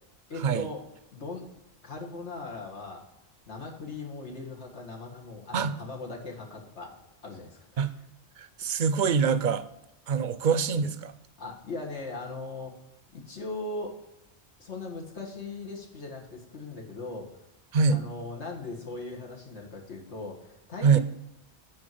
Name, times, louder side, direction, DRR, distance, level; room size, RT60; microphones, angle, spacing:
voice 1, 0.3-0.8 1.1-1.5 1.8-3.0 3.5-6.9 7.2-7.9 11.4-12.7 13.1-14.0 14.6-17.3 17.9-21.0, left 3 dB, 85° left, 0 dB, 2.0 m, -39 dB
voice 2, 8.4-9.7 10.1-11.1 17.7-18.0 20.8-21.0, right 6 dB, 55° right, 13 dB, 0.6 m, -24 dB
8.6 x 4.7 x 7.5 m, 0.90 s
omnidirectional pair, 1.1 m